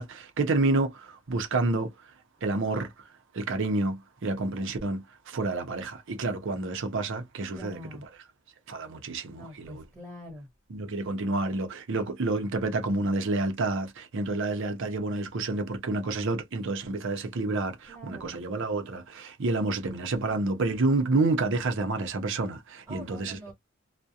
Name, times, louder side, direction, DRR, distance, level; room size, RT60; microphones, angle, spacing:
voice 1, 0.0-1.9 2.4-2.9 3.3-7.8 8.7-9.8 10.7-23.4, right 2 dB, 60° right, 0.6 m, -29 dB
voice 2, 7.5-8.0 9.3-10.5 17.9-18.5 20.2-20.4 22.9-23.5, equal, 5° right, 1.2 m, -44 dB
2.3 x 2.1 x 2.7 m
head